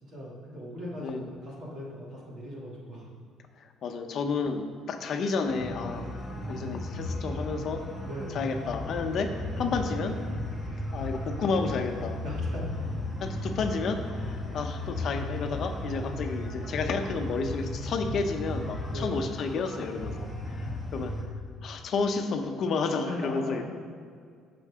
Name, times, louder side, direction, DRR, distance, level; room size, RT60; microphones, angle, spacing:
voice 1, 0.0-3.1 8.0-8.4 12.2-12.8 18.8-19.2 23.1-23.6, left 1 dB, 40° right, -5 dB, 2.7 m, -39 dB
voice 2, 3.8-6.1 6.5-7.8 8.3-9.3 9.6-10.2 10.9-12.2 13.2-21.1 21.6-23.6, left 4 dB, 45° left, 4 dB, 1.0 m, -31 dB
sound 1, 5.5-21.2, left 1 dB, 5° left, 1.7 m, -35 dB
15.0 x 6.1 x 3.7 m, 2.1 s
cardioid pair, 165°, 0 cm